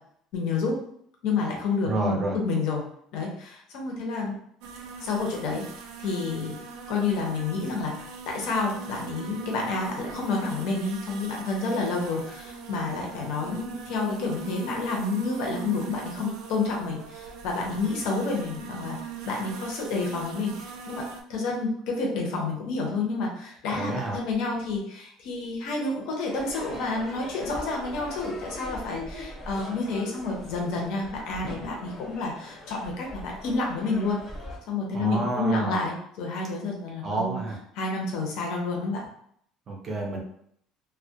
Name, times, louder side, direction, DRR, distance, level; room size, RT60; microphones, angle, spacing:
voice 1, 0.3-0.8 1.2-2.8 3.1-4.3 5.0-5.6 6.0-6.6 6.9-19.0 19.2-34.2 34.7-37.4 37.8-39.0, left 3 dB, 60° left, -1 dB, 0.6 m, -29 dB
voice 2, 1.8-2.4 23.7-24.2 34.9-35.8 37.0-37.6 39.7-40.2, right 2 dB, 25° right, -1 dB, 0.5 m, -29 dB
sound 1, 4.6-21.2, right 5 dB, 75° right, 0.3 m, -41 dB
Crowd / Fireworks, 26.3-34.6, left 1 dB, 20° left, 0.7 m, -40 dB
2.2 x 2.1 x 2.7 m, 0.66 s
cardioid pair, 175°, 0 cm